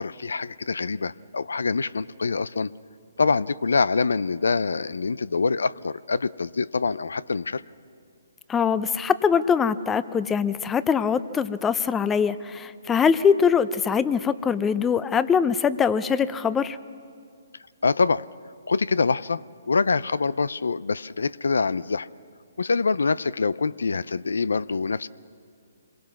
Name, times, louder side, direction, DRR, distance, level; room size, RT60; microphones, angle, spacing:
voice 1, 0.0-2.7 3.2-7.6 17.8-18.3 18.7-22.1 22.6-25.1, left 4 dB, 80° left, 19 dB, 0.5 m, -25 dB
voice 2, 8.5-16.8, left 6 dB, 10° left, 15 dB, 0.6 m, -22 dB
26.5 x 22.0 x 6.0 m, 2.2 s
hypercardioid pair, 140°, 0 cm